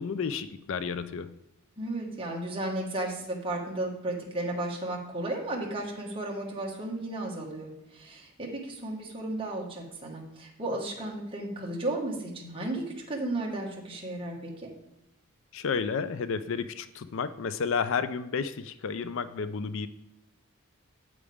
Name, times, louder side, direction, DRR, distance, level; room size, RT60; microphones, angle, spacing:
voice 1, 0.0-1.3 15.5-19.9, left 5 dB, 60° left, 12 dB, 0.4 m, -31 dB
voice 2, 1.8-14.7, right 1 dB, 25° right, -1 dB, 1.7 m, -34 dB
8.6 x 8.2 x 3.5 m, 0.88 s
head